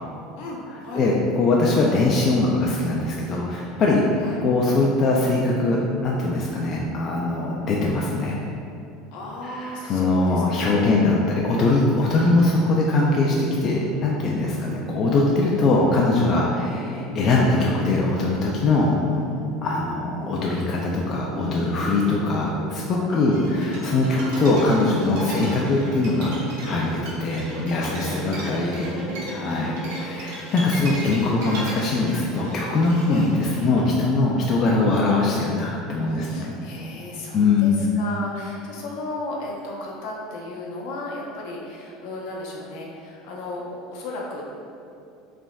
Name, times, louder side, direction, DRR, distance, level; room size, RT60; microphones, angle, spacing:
voice 1, 0.4-1.1 4.2-4.4 9.1-11.1 19.1-19.5 23.1-23.6 26.8-27.2 27.8-30.5 33.0-33.3 33.5-33.7 36.1-44.4, left 2 dB, 65° left, -3 dB, 0.7 m, -36 dB
voice 2, 0.9-4.0 4.4-8.4 9.6-19.0 19.6-26.4 26.6-28.9 29.3-36.5 37.3-37.8, left 2 dB, 30° left, -3 dB, 0.3 m, -22 dB
sound 1, 12.6-30.0, right 1 dB, 55° right, 0.8 m, -36 dB
sound 2, 23.3-33.8, right 1 dB, 75° right, 1.2 m, -36 dB
4.9 x 3.4 x 2.3 m, 2.5 s
cardioid pair, 170°, 0 cm